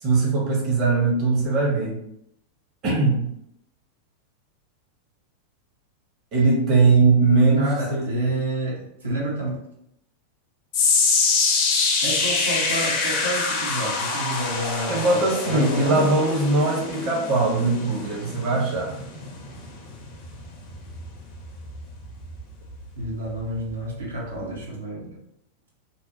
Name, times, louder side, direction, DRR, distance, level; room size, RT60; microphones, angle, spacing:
voice 1, 0.0-2.0 2.8-3.2 6.3-8.3 14.9-19.0, right 3 dB, 40° right, -2 dB, 0.8 m, -20 dB
voice 2, 7.6-9.6 12.0-16.0 23.0-25.2, right 1 dB, 75° right, -5 dB, 0.7 m, -29 dB
sound 1, 10.7-23.1 23.4-23.7 24.4-24.5, left 4 dB, 45° left, 0.6 m, -26 dB
2.7 x 2.0 x 2.7 m, 0.77 s
figure-of-eight pair, 90°, 0 cm